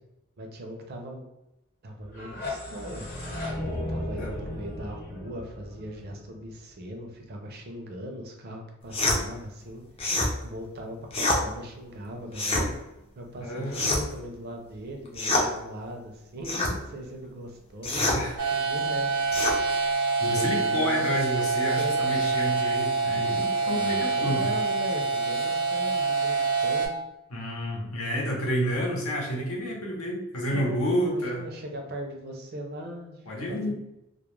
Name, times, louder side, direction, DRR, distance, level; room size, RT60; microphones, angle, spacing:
voice 1, 0.4-1.2 1.8-3.1 3.6-9.8 10.1-12.8 13.1-18.1 18.5-19.1 19.4-19.5 19.8-21.2 21.8-22.4 23.6-26.9 30.5-33.7, right 1 dB, 45° right, 3 dB, 0.4 m, -39 dB
sound 1, 2.0-6.9, left 1 dB, 45° left, 0.9 m, -35 dB
sound 2, 8.9-9.2 10.0-10.3 11.1-11.4 12.3-12.7 13.7-14.2 15.1-15.5 16.4-16.7 17.8-18.2 19.3-19.6, left 2 dB, 25° left, 0.4 m, -25 dB
voice 2, 13.4-13.9 18.1-18.4 20.2-24.5 27.3-31.4 33.3-33.7, equal, 90° left, -2 dB, 0.8 m, -30 dB
sound 3, 18.4-26.9, right 3 dB, 85° right, 0.7 m, -26 dB
2.2 x 2.1 x 3.0 m, 0.91 s
head